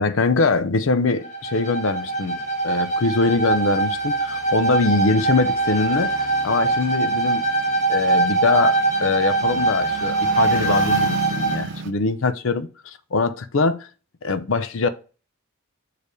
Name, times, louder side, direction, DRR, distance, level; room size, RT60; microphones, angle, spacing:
voice 1, 0.0-2.4 2.6-6.1 6.4-7.4 7.9-13.9 14.2-14.9, left 3 dB, 70° left, 0.6 m, -22 dB
Bowed string instrument, 1.2-11.7, right 3 dB, 35° left, 1.8 m, -22 dB
sound 1, 1.9-11.9, right 4 dB, 60° right, 0.5 m, -35 dB
6.7 x 3.4 x 4.8 m
head